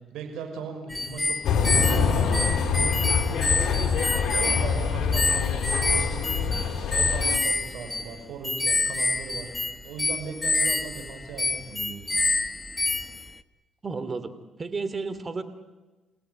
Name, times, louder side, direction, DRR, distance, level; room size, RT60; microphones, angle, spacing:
voice 1, 0.1-9.5 9.8-12.3, right 5 dB, 85° right, 5 dB, 5.8 m, -39 dB
sound 1, 0.9-13.4, left 2 dB, 20° left, 1.3 m, -27 dB
sound 2, 1.4-7.4, left 6 dB, 70° left, 4.5 m, -25 dB
voice 2, 13.8-15.4, right 4 dB, 30° right, 12 dB, 2.8 m, -32 dB
29.5 x 17.0 x 9.8 m, 1.2 s
cardioid pair, 90°, 0 cm